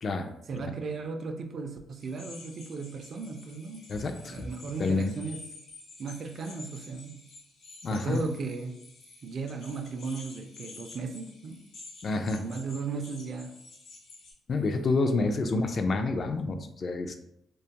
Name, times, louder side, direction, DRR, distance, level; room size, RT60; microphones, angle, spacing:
voice 1, 0.5-3.9 4.3-5.4 6.0-7.2 7.9-8.8 9.2-11.6 12.4-13.6 15.2-15.3, right 4 dB, 55° right, 5 dB, 0.3 m, -36 dB
sound 1, 2.0-14.3, left 3 dB, 80° left, 0.9 m, -50 dB
voice 2, 3.9-4.5 4.8-5.1 7.8-8.2 12.0-12.4 14.5-17.2, left 3 dB, 45° left, 6 dB, 0.3 m, -28 dB
2.4 x 2.3 x 2.8 m, 0.78 s
cardioid pair, 90°, 0 cm